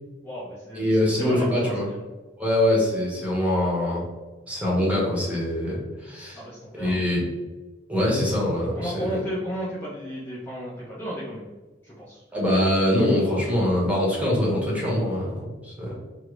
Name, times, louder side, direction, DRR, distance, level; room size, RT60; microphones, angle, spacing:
voice 1, 0.2-2.0 6.3-7.0 8.7-11.4 11.8-12.2, equal, 10° left, -8 dB, 0.6 m, -34 dB
voice 2, 0.7-1.9 2.4-4.0 4.5-6.4 6.7-7.2 7.9-9.2 12.3-16.0, left 1 dB, 10° right, -4 dB, 0.9 m, -23 dB
3.6 x 2.0 x 3.0 m, 1.2 s
head